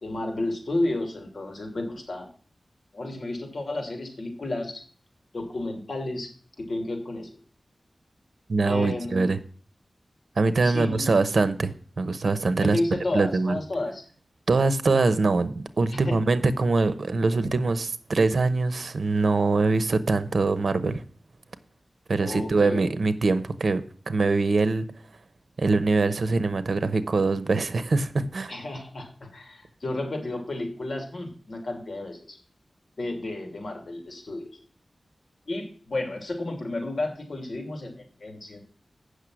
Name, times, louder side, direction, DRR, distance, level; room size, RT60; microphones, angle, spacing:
voice 1, 0.0-2.3 2.9-4.8 5.3-6.3 6.6-7.4 8.7-9.3 10.6-11.1 12.6-14.0 15.9-16.2 22.2-22.9 28.5-32.4 33.0-34.6 35.5-38.6, left 2 dB, 65° left, 2.8 m, -32 dB
voice 2, 8.5-9.4 10.4-12.8 13.1-13.6 14.5-21.0 22.1-23.8 24.1-24.9 25.6-28.5, right 3 dB, 75° right, 0.9 m, -23 dB
8.4 x 6.5 x 6.2 m
wide cardioid pair, 80°, 0 cm